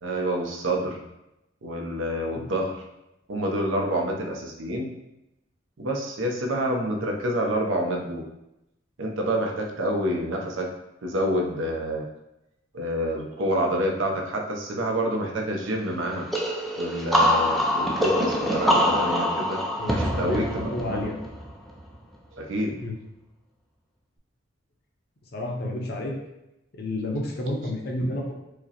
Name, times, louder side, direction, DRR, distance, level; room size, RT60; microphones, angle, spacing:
voice 1, 0.0-1.0 1.6-2.8 3.3-4.9 5.8-8.2 9.0-10.7 11.0-12.0 12.7-16.3 16.8-19.6 19.9-21.1 22.3-22.7, equal, 70° right, 1 dB, 0.6 m, -27 dB
sound 1, 16.3-21.9, equal, ahead, 0.3 m, -24 dB
voice 2, 19.8-21.1 22.8-22.9 25.3-26.1 26.8-28.3, left 1 dB, 50° left, 0 dB, 0.6 m, -30 dB
4.8 x 2.0 x 2.8 m, 0.89 s
head